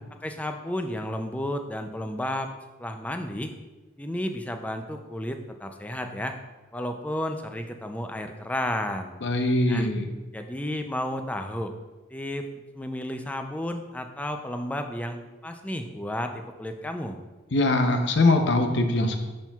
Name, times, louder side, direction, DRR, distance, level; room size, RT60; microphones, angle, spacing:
voice 1, 0.2-2.5 2.8-3.5 4.0-6.4 6.7-9.1 9.7-9.9 10.3-11.7 12.1-12.5 12.7-17.2, left 1 dB, 5° left, 5 dB, 0.3 m, -32 dB
voice 2, 9.2-10.1 17.5-19.2, left 2 dB, 65° left, 6 dB, 0.7 m, -22 dB
11.5 x 4.4 x 2.3 m, 1.2 s
head